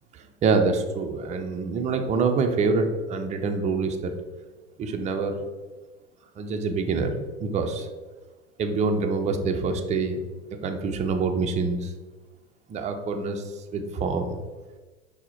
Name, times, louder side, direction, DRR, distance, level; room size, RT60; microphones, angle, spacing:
voice 1, 0.1-4.2 4.8-5.4 6.4-7.1 7.4-7.9 8.6-10.2 10.6-11.9 12.7-14.4, right 4 dB, 20° right, 5 dB, 0.4 m, -26 dB
5.9 x 2.1 x 4.3 m, 1.3 s
figure-of-eight pair, 80°, 36 cm